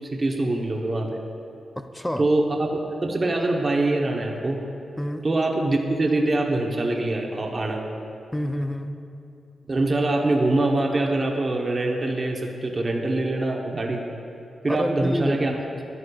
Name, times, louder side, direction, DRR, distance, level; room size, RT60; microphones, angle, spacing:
voice 1, 0.1-1.2 2.2-4.6 5.2-7.8 9.7-14.0 14.6-15.5, right 2 dB, 30° right, 1 dB, 0.7 m, -24 dB
voice 2, 1.8-2.3 5.0-5.3 8.3-9.0 14.7-15.6, equal, 5° left, 8 dB, 0.4 m, -28 dB
11.5 x 11.0 x 2.3 m, 2.7 s
wide cardioid pair, 125°, 0 cm